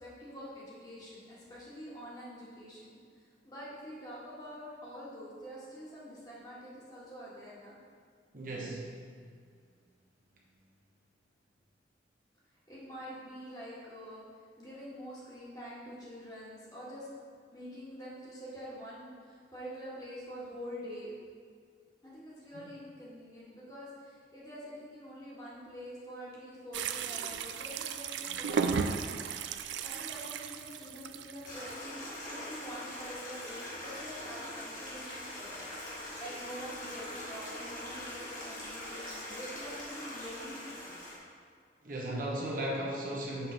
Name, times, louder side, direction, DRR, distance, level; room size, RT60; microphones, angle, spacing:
voice 1, 0.0-7.8 12.7-14.2 14.6-17.1 17.5-21.1 22.0-29.1 29.8-35.7 36.2-41.0, equal, 20° left, -7 dB, 1.7 m, -46 dB
voice 2, 8.3-9.0 22.5-22.7 41.8-43.5, right 1 dB, 45° right, -3 dB, 1.0 m, -36 dB
sound 1, 26.7-31.7, right 6 dB, 75° right, 0.4 m, -35 dB
Stream, 31.4-41.2, left 1 dB, 45° left, 1.7 m, -42 dB
7.0 x 3.8 x 5.7 m, 2.1 s
head